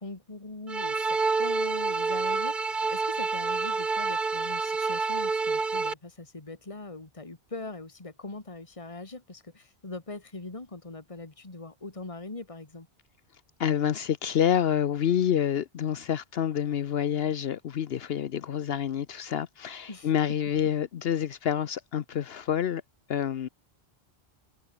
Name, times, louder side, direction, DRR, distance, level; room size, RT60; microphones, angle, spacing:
voice 1, 0.0-12.9 19.9-20.1, left 3 dB, 30° left, 2.2 m, -41 dB
sound 1, 0.7-5.9, right 4 dB, 50° right, 1.8 m, -28 dB
voice 2, 13.6-22.8 23.1-23.5, left 9 dB, 70° left, 0.9 m, -28 dB
omnidirectional pair, 1.1 m